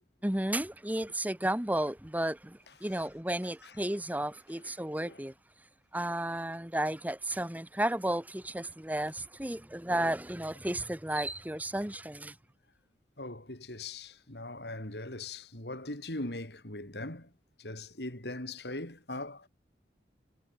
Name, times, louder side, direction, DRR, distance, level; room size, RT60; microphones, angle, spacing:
voice 1, 0.2-5.3 5.9-12.4, right 1 dB, 10° right, 1.3 m, -33 dB
voice 2, 4.5-5.2 13.2-17.3 17.6-19.5, left 2 dB, 75° left, 4.8 m, -41 dB
head